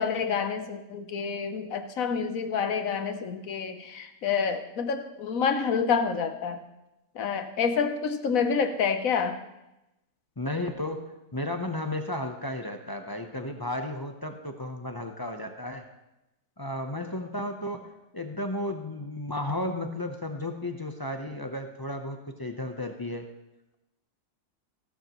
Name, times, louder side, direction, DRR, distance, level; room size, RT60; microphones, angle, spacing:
voice 1, 0.0-6.6 7.1-9.4, left 6 dB, 60° left, 8 dB, 1.2 m, -28 dB
voice 2, 10.4-15.8 16.6-17.9 18.1-23.3, left 1 dB, 30° left, 5 dB, 0.4 m, -33 dB
16.0 x 12.5 x 3.0 m, 0.93 s
omnidirectional pair, 1.7 m